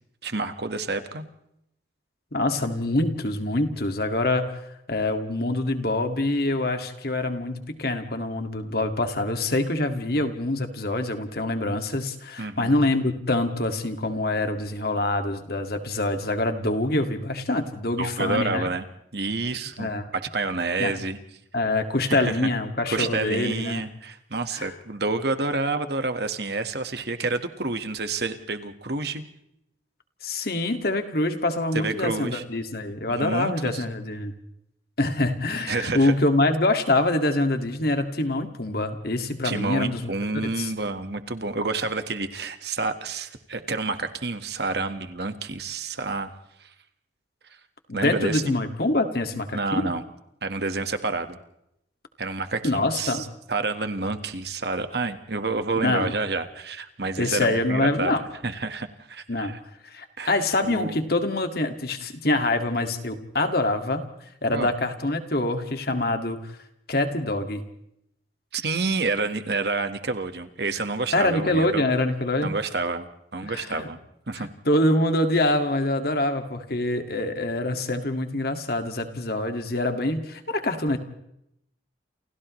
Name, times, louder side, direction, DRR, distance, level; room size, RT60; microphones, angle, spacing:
voice 1, 0.2-1.2 12.4-12.7 18.0-18.8 19.1-21.2 22.0-22.4 22.9-29.2 31.7-32.4 33.1-33.8 35.7-36.1 39.4-46.3 46.6-46.7 47.9-48.5 49.5-50.0 50.4-51.4 52.2-58.1 58.4-59.6 60.2-61.0 64.5-64.7 68.5-71.8 72.4-73.1 73.3-74.0 74.3-74.5, right 3 dB, 60° right, 8 dB, 1.6 m, -29 dB
voice 2, 2.3-18.6 19.8-20.1 20.8-21.0 21.5-23.8 24.5-24.7 30.2-34.3 35.0-40.7 47.9-49.9 52.6-53.2 55.8-56.1 57.2-58.2 59.3-59.5 59.8-64.1 64.4-66.5 66.9-67.6 71.1-72.5 73.4-73.9 74.4-81.0, left 2 dB, 55° left, 6 dB, 2.1 m, -25 dB
29.5 x 28.5 x 3.2 m, 0.79 s
head